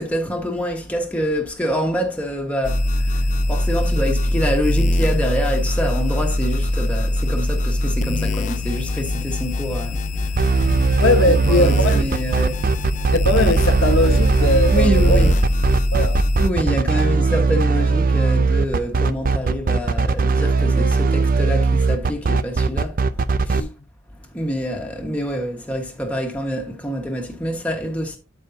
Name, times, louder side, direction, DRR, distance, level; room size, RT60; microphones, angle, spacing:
voice 1, 0.0-10.3 11.3-12.7 14.7-15.3 16.4-23.0 23.4-23.7 24.3-28.2, equal, 5° left, 1.4 m, -26 dB
sound 1, 2.6-16.5, left 1 dB, 35° left, 0.5 m, -22 dB
sound 2, 10.4-23.6, right 4 dB, 40° right, 0.5 m, -19 dB
voice 2, 11.0-12.1 13.1-15.2 15.9-16.2 23.5-23.7, left 2 dB, 65° left, 1.2 m, -20 dB
12.0 x 5.4 x 2.8 m
head